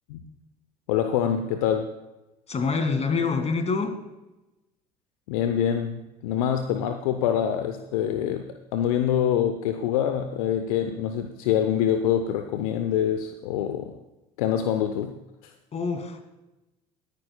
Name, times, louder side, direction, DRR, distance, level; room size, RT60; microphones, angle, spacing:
voice 1, 0.9-1.9 5.3-13.9 14.4-15.2, left 9 dB, 70° left, 7 dB, 0.7 m, -25 dB
voice 2, 2.5-3.9 15.7-16.2, left 4 dB, 35° left, 7 dB, 2.0 m, -26 dB
21.5 x 9.9 x 2.3 m, 1.0 s
figure-of-eight pair, 60°, 19 cm